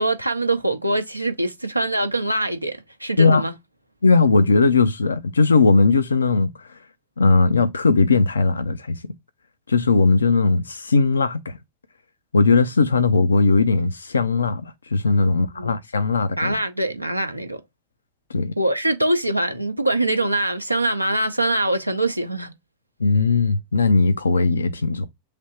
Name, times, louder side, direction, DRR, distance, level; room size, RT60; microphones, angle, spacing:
voice 1, 0.0-3.5 15.6-15.7 16.4-17.6 18.6-22.5, right 1 dB, 85° right, 0.6 m, -23 dB
voice 2, 4.0-6.8 7.2-9.0 9.7-11.5 12.3-16.6 18.3-18.5 23.0-25.1, left 3 dB, 75° left, 0.4 m, -18 dB
3.3 x 2.6 x 4.2 m
figure-of-eight pair, 90°, 0 cm